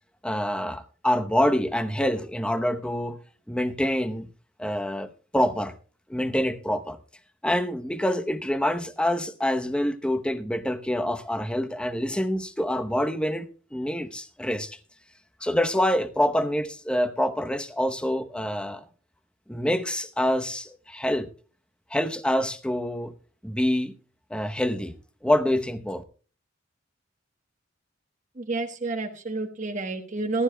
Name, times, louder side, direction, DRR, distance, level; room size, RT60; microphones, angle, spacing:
voice 1, 0.2-3.2 3.5-4.3 4.6-5.7 6.1-7.0 7.4-14.8 15.4-18.8 19.5-21.3 21.9-23.1 23.4-24.0 24.3-24.9 25.2-26.0, left 1 dB, 5° left, 0.8 m, -26 dB
voice 2, 28.4-30.4, right 3 dB, 40° right, 1.2 m, -29 dB
19.5 x 12.0 x 2.2 m
head